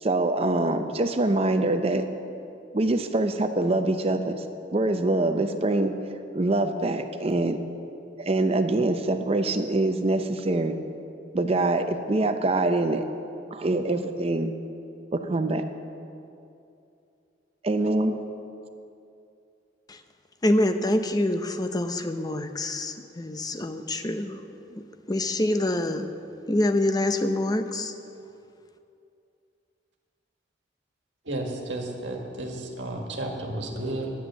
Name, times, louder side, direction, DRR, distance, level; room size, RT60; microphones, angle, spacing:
voice 1, 0.0-2.1 2.7-4.4 4.7-5.9 6.3-7.6 8.2-10.8 11.3-13.0 13.5-14.5 15.1-15.6 17.6-18.2, right 2 dB, 35° right, 8 dB, 0.6 m, -24 dB
voice 2, 20.4-24.8 25.1-26.1 26.5-27.9, left 1 dB, 20° left, 8 dB, 0.6 m, -26 dB
voice 3, 31.2-34.1, right 1 dB, 75° right, 1 dB, 1.7 m, -32 dB
10.0 x 9.8 x 7.4 m, 2.6 s
head